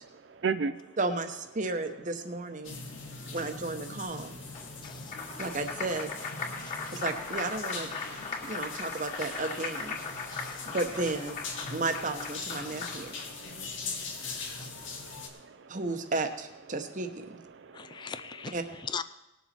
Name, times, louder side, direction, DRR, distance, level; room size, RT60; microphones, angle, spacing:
voice 1, 0.0-0.8 5.3-5.4 8.3-8.5 10.1-10.7 11.6-11.8 12.6-15.8 17.5-18.1, right 5 dB, 65° right, 11 dB, 0.4 m, -39 dB
voice 2, 1.0-2.8 3.3-4.3 5.4-6.1 6.9-7.9 8.4-10.0 10.7-11.3 11.7-13.1 15.7-17.4 18.5-18.6, right 3 dB, 40° right, 8 dB, 0.9 m, -33 dB
sound 1, 2.6-15.3, left 4 dB, 85° left, 1.8 m, -42 dB
Applause, 4.5-13.3, left 4 dB, 40° left, 2.5 m, -38 dB
voice 3, 4.8-5.1 6.7-7.0 10.3-10.7 14.0-14.1 17.7-19.0, left 6 dB, 25° left, 12 dB, 0.3 m, -41 dB
19.0 x 7.1 x 4.3 m, 1.0 s
head